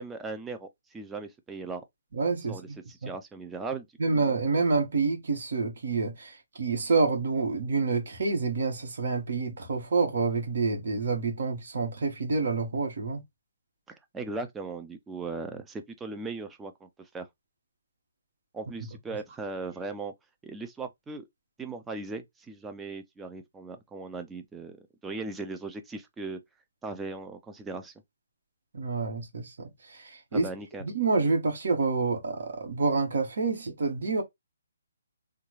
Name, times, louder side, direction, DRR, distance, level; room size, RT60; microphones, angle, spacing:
voice 1, 0.0-1.8 2.5-4.2 13.9-17.3 18.5-20.1 20.4-21.3 21.6-26.4 26.8-27.9 30.3-30.9, right 3 dB, 10° right, 0.4 m, -38 dB
voice 2, 2.1-3.1 4.0-13.2 28.7-30.5 30.8-34.2, right 4 dB, 65° right, 1.5 m, -28 dB
3.5 x 2.3 x 3.1 m
hypercardioid pair, 155°, 0 cm